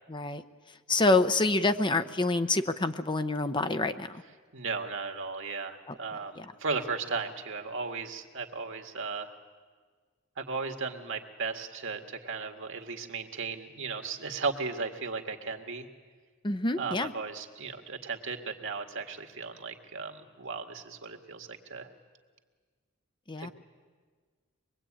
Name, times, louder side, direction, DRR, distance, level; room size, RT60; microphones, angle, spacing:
voice 1, 0.1-0.4 0.9-4.2 5.9-6.0 6.4-6.5 16.4-17.1 23.3-23.5, left 2 dB, 20° left, 9 dB, 0.8 m, -27 dB
voice 2, 4.5-9.3 10.4-15.9 16.7-21.9 23.4-23.5, right 4 dB, 65° right, 4 dB, 2.0 m, -36 dB
24.5 x 22.5 x 8.9 m, 1.5 s
head